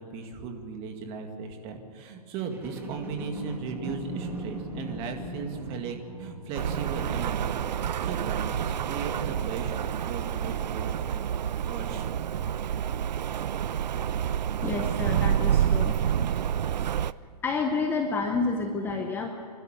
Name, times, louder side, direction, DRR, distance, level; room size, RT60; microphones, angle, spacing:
voice 1, 0.0-9.7 10.0-10.9 11.7-12.1, right 5 dB, 25° right, 4 dB, 2.1 m, -37 dB
sound 1, 2.5-9.9 10.5-10.6, right 2 dB, 10° right, 2.1 m, -40 dB
Rain, 6.5-17.1, right 9 dB, 85° right, 0.6 m, -28 dB
voice 2, 14.6-16.0 17.4-19.3, left 4 dB, 10° left, 4 dB, 0.8 m, -29 dB
28.5 x 12.5 x 9.2 m, 2.4 s
hypercardioid pair, 160°, 21 cm